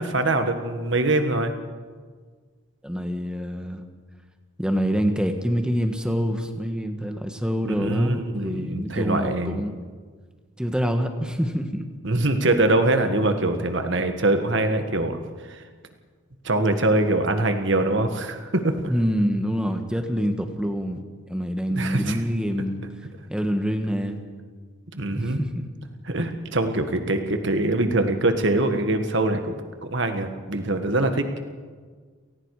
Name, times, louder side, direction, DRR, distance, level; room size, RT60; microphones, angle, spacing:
voice 1, 0.0-1.5 7.6-9.6 12.0-15.2 15.5-15.6 16.4-18.7 21.7-22.2 24.9-25.4 26.1-29.5 29.9-31.4, right 2 dB, 60° right, 7 dB, 1.7 m, -23 dB
voice 2, 2.8-3.8 4.6-9.8 10.6-11.9 18.9-22.8 23.3-24.2 25.1-25.7, equal, 5° right, 5 dB, 1.5 m, -26 dB
29.5 x 18.0 x 4.9 m, 1.5 s
head